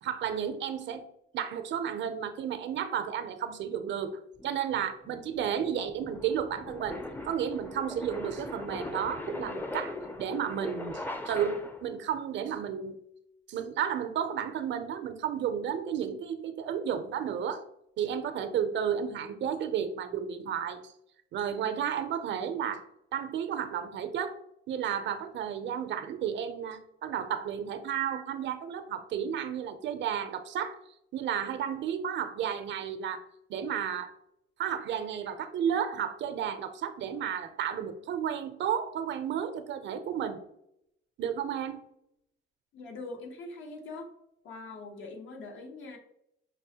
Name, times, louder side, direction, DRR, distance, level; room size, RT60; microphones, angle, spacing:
voice 1, 0.0-1.0 1.3-13.0 13.5-17.6 18.0-20.9 21.3-22.8 23.1-24.3 24.7-30.8 31.1-33.2 33.5-34.1 34.6-40.4 41.2-41.8, right 8 dB, 65° right, 10 dB, 0.5 m, -32 dB
sound 1, 4.4-12.0, left 2 dB, 10° left, 0.4 m, -40 dB
voice 2, 42.7-44.1 44.4-46.0, left 3 dB, 75° left, 3 dB, 0.8 m, -42 dB
5.3 x 2.1 x 2.8 m, 0.78 s
cardioid pair, 90°, 20 cm